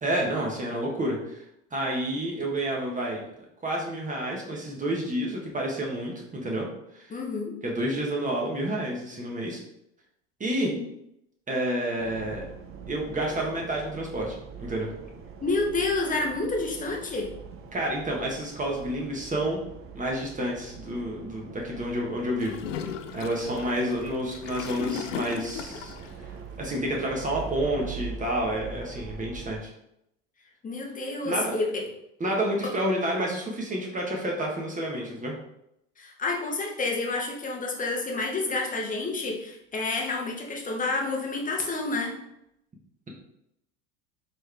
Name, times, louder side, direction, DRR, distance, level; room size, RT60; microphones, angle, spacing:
voice 1, 0.0-1.4 1.7-3.2 3.6-6.7 6.9-7.1 7.6-9.6 10.4-10.7 11.5-12.4 12.9-14.9 17.7-19.6 19.9-22.8 23.1-25.9 26.6-29.7 31.2-31.5 32.2-35.3, right 1 dB, 20° right, -2 dB, 1.3 m, -29 dB
voice 2, 7.1-7.5 10.6-10.9 15.4-17.3 30.6-31.8 32.6-32.7 36.0-42.2, left 3 dB, 20° left, 0 dB, 1.1 m, -29 dB
sound 1, 12.0-29.6, right 6 dB, 35° right, 0.7 m, -43 dB
Gurgling / Toilet flush, 22.4-26.1, left 8 dB, 90° left, 0.5 m, -37 dB
4.5 x 3.2 x 3.3 m, 0.80 s
hypercardioid pair, 85°, 36 cm